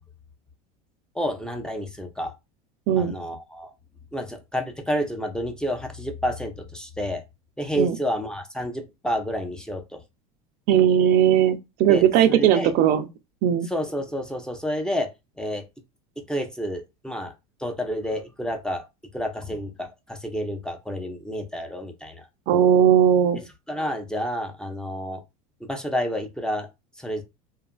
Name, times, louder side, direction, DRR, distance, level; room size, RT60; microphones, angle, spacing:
voice 1, 1.1-2.3 3.0-3.7 4.1-7.2 7.6-10.0 11.9-12.7 13.7-15.1 15.4-15.7 16.3-17.3 17.6-18.8 19.1-22.2 23.4-25.2 25.6-26.7 27.0-27.2, equal, 5° left, 0.5 m, -29 dB
voice 2, 10.7-13.1 13.4-13.7 22.5-23.4, right 9 dB, 50° right, 0.4 m, -18 dB
2.8 x 2.4 x 2.2 m
supercardioid pair, 105°, 18 cm